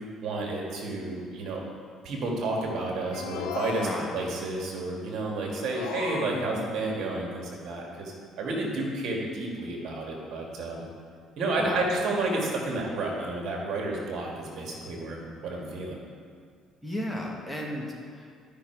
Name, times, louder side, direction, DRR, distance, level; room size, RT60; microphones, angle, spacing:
voice 1, 0.2-1.6 2.0-10.8 11.4-15.9, right 2 dB, 65° right, -1 dB, 1.9 m, -31 dB
sound 1, 3.1-4.5 5.5-6.9, left 7 dB, 90° left, 0.7 m, -37 dB
voice 2, 3.7-4.1 6.3-6.7 11.6-11.8 16.8-18.3, left 1 dB, 5° left, -2 dB, 1.7 m, -34 dB
12.0 x 5.9 x 4.6 m, 2.1 s
cardioid pair, 90°, 0 cm